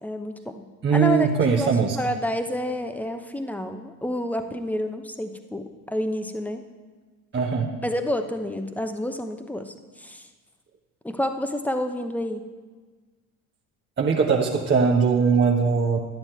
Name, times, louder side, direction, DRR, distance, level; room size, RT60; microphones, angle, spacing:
voice 1, 0.0-1.3 1.6-6.6 7.8-10.3 11.0-12.5, left 1 dB, 5° left, 7 dB, 0.9 m, -29 dB
voice 2, 0.8-2.0 7.3-7.8 14.0-16.0, right 5 dB, 25° right, -1 dB, 1.1 m, -21 dB
11.0 x 9.4 x 4.5 m, 1.4 s
hypercardioid pair, 75°, 43 cm